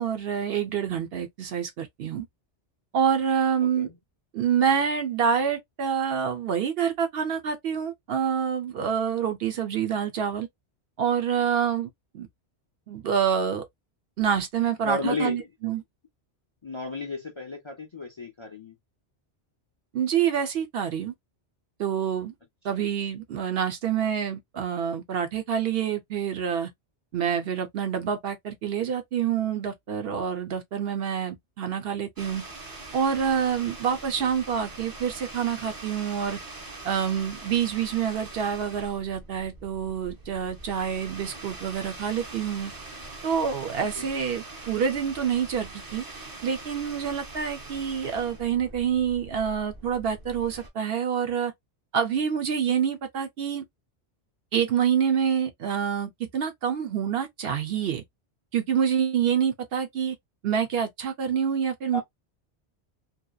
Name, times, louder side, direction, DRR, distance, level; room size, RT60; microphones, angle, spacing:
voice 1, 0.0-2.3 2.9-3.9 4.3-10.5 11.0-12.3 12.9-13.6 14.2-15.8 19.9-21.1 21.8-22.3 22.6-26.7 27.1-32.4 32.9-36.4 36.8-42.7 43.2-46.0 46.4-51.5 51.9-53.6 54.5-58.0 58.5-60.2 60.4-62.0, right 8 dB, 65° right, 0.7 m, -27 dB
voice 2, 3.6-3.9 14.8-15.4 16.6-18.8 22.8-22.9 34.2-34.3 44.0-44.1 61.9-62.0, left 3 dB, 40° left, 0.4 m, -33 dB
sound 1, 32.2-50.7, right 2 dB, 25° right, 0.5 m, -43 dB
2.7 x 2.1 x 2.2 m
omnidirectional pair, 1.2 m